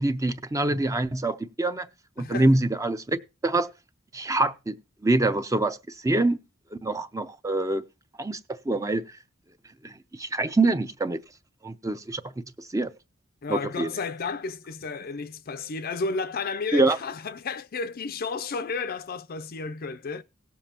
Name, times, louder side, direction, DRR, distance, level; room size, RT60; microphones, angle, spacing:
voice 1, 0.0-1.9 2.2-3.7 4.1-4.8 5.0-5.8 6.0-6.4 6.7-7.8 8.2-8.4 8.7-9.0 9.8-11.2 11.6-12.2 12.7-12.9 13.5-13.9 16.7-17.0, right 2 dB, 15° right, 0.5 m, -25 dB
voice 2, 2.2-2.5 13.4-20.2, left 4 dB, 50° left, 0.5 m, -32 dB
17.5 x 7.0 x 2.9 m
head